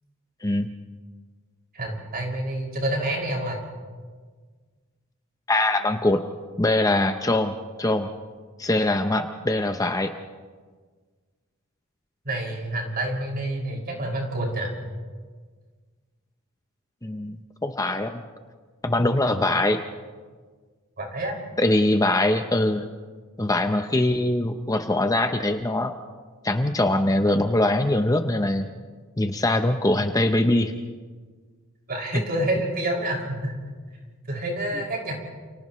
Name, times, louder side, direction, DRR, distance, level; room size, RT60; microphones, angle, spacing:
voice 1, 1.7-3.6 12.2-14.7 21.0-21.4 31.9-33.6 34.3-35.1, right 1 dB, 45° right, -1 dB, 5.9 m, -28 dB
voice 2, 5.5-6.2 6.6-8.1 8.6-10.1 17.0-18.2 18.8-19.8 21.6-22.9 23.4-25.9 26.4-28.7 29.2-30.7 32.1-32.2, left 1 dB, 15° left, 6 dB, 0.8 m, -22 dB
30.0 x 29.5 x 3.2 m, 1.5 s
head